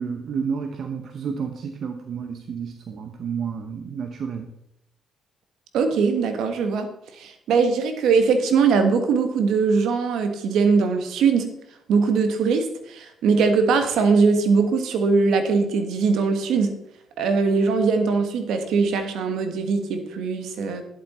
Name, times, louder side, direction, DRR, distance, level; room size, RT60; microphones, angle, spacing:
voice 1, 0.0-4.5, right 6 dB, 65° right, 6 dB, 1.0 m, -30 dB
voice 2, 5.7-6.9 7.2-11.5 11.9-16.7 17.2-20.8, right 5 dB, 80° right, 7 dB, 1.4 m, -21 dB
11.0 x 7.6 x 4.3 m, 0.79 s
cardioid pair, 75°, 0 cm